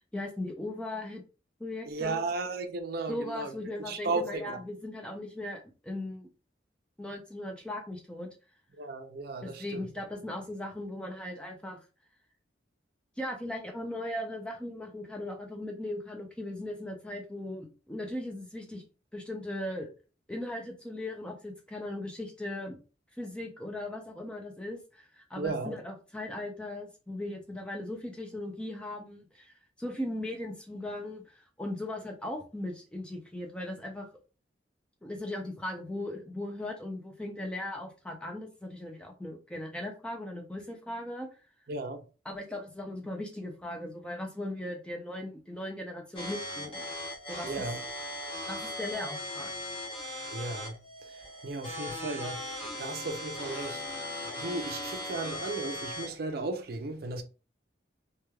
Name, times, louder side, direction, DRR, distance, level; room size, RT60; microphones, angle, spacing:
voice 1, 0.1-1.2 1.6-2.2 3.1-6.3 7.0-8.3 9.4-11.8 13.2-18.8 19.1-19.9 20.3-22.8 23.2-34.1 35.0-41.3 42.3-46.8 47.3-47.6 48.5-49.5, left 1 dB, 5° left, 0.4 m, -38 dB
voice 2, 1.9-3.5 3.8-4.6 8.8-9.9 25.4-25.8 41.7-42.0 47.4-47.8 50.3-57.2, right 3 dB, 55° right, 0.4 m, -35 dB
sound 1, 46.2-56.2, left 1 dB, 30° left, 0.8 m, -38 dB
3.0 x 2.2 x 2.2 m
head